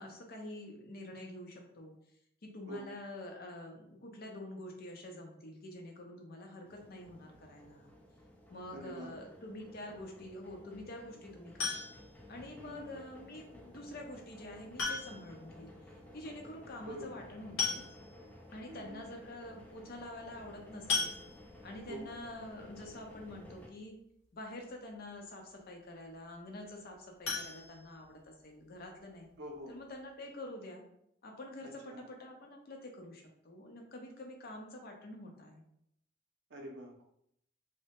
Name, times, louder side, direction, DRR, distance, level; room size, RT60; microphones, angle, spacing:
voice 1, 0.0-1.9 2.4-7.9 8.5-11.8 12.3-17.8 18.5-21.2 21.6-23.9 24.3-29.3 29.7-30.8 31.2-35.6, left 1 dB, 55° left, 2 dB, 0.6 m, -47 dB
sound 1, 6.6-23.7, left 1 dB, 10° left, 0.4 m, -55 dB
voice 2, 8.7-9.1 12.6-13.0 16.9-17.2 18.7-19.0 21.9-22.1 29.4-29.7 31.6-32.0 36.5-37.0, right 1 dB, 60° right, 0 dB, 0.5 m, -45 dB
sound 2, 11.6-12.2 13.7-13.8 14.8-15.4 15.7-15.8 16.1-16.2 17.2-17.3 17.6-18.3 18.9-19.0 19.3-19.5 20.9-21.7 27.2-28.4 28.8-28.9 29.3-29.4 29.8-29.9, left 4 dB, 85° left, 0.8 m, -36 dB
3.2 x 2.1 x 2.8 m, 0.73 s
head